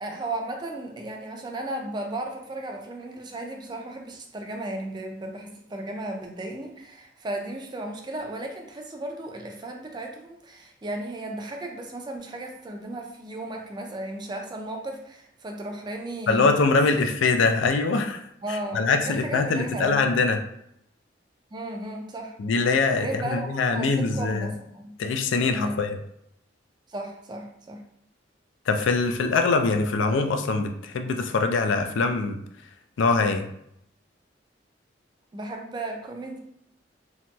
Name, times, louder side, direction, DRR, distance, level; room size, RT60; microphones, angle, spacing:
voice 1, 0.0-16.6 17.0-17.1 18.4-20.1 21.5-22.4 23.0-24.9 25.5-25.8 26.9-27.8 35.3-36.4, right 1 dB, 25° right, 3 dB, 0.3 m, -35 dB
voice 2, 16.3-18.2 18.7-20.4 22.4-24.5 25.0-26.0 28.7-32.4 33.0-33.5, left 4 dB, 85° left, 6 dB, 0.4 m, -23 dB
2.9 x 2.8 x 2.2 m, 0.75 s
head